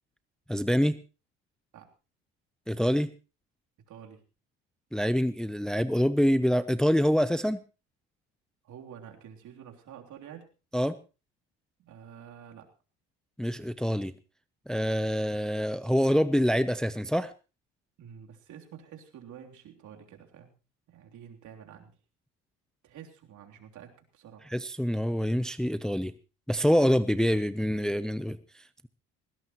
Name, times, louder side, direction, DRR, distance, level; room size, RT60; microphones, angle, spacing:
voice 1, 0.5-1.0 2.7-3.1 4.9-7.6 10.7-11.0 13.4-14.1 14.7-17.3 24.5-26.1 26.5-28.9, equal, ahead, 14 dB, 0.7 m, -26 dB
voice 2, 3.9-4.2 8.6-10.5 11.8-12.7 18.0-20.5 20.9-21.9 22.8-24.5, right 8 dB, 60° right, 2 dB, 3.4 m, -48 dB
20.0 x 17.5 x 3.1 m, 0.33 s
supercardioid pair, 75°, 34 cm